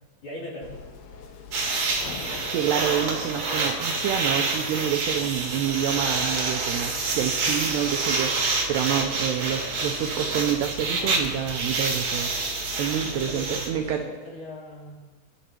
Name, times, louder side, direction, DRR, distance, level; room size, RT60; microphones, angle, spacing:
voice 1, 0.2-0.8 13.1-15.0, left 1 dB, 40° left, -5 dB, 4.6 m, -39 dB
sound 1, 0.6-13.9, left 6 dB, 70° left, 2.3 m, -43 dB
sound 2, 1.5-13.7, right 3 dB, 45° right, 2.4 m, -27 dB
voice 2, 2.5-12.5 12.8-14.0, right 10 dB, 90° right, 4 dB, 2.3 m, -28 dB
21.0 x 11.5 x 4.5 m, 1.3 s
omnidirectional pair, 5.9 m